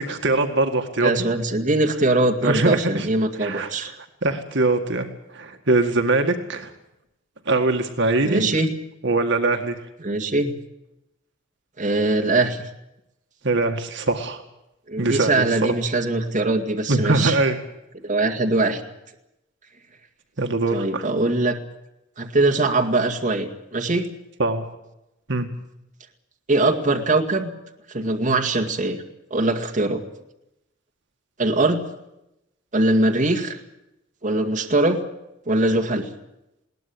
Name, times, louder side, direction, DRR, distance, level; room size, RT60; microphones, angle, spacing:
voice 1, 0.0-1.3 2.4-3.1 3.4-3.7 4.2-6.7 7.5-8.5 9.0-9.8 13.4-14.4 15.0-15.5 16.9-17.6 20.4-21.0 24.4-24.6 25.3-25.5, right 2 dB, 65° right, 5 dB, 1.9 m, -22 dB
voice 2, 1.0-4.0 8.2-8.7 10.0-10.5 11.8-12.6 14.9-17.4 18.0-18.8 20.7-21.6 22.2-24.1 26.5-27.5 27.9-29.0 29.3-30.0 31.4-31.8 32.7-33.6 34.2-35.0 35.5-36.1, right 2 dB, 40° right, 3 dB, 2.2 m, -22 dB
21.0 x 18.0 x 8.7 m, 0.88 s
head